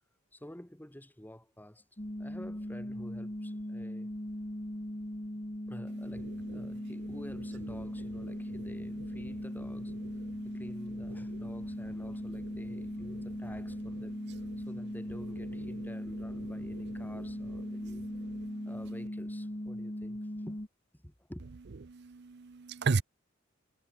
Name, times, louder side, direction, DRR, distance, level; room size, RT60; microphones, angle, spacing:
voice 1, 0.3-1.9 2.2-4.1 5.7-10.0 10.4-14.2 14.6-18.1 18.7-20.7 20.9-21.4, equal, 10° left, 2.1 m, -50 dB
sound 1, 2.0-20.7, left 1 dB, 30° left, 2.3 m, -39 dB
voice 2, 6.5-6.9 8.2-8.5 10.3-10.6 14.5-14.7 17.0-17.2 17.7-18.7 21.9-23.0, right 4 dB, 55° right, 0.6 m, -36 dB
head